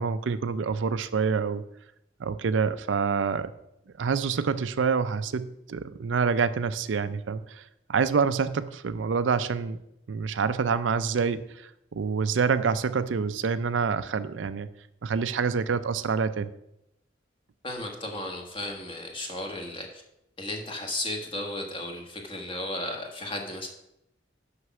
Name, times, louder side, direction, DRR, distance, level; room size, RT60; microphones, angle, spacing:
voice 1, 0.0-1.6 2.2-3.5 4.0-7.6 7.9-9.8 10.1-14.7 15.0-16.5, right 5 dB, 90° right, 12 dB, 0.5 m, -27 dB
voice 2, 17.6-20.0 20.4-23.7, left 1 dB, 30° left, 2 dB, 1.4 m, -34 dB
6.4 x 5.8 x 6.0 m, 0.81 s
head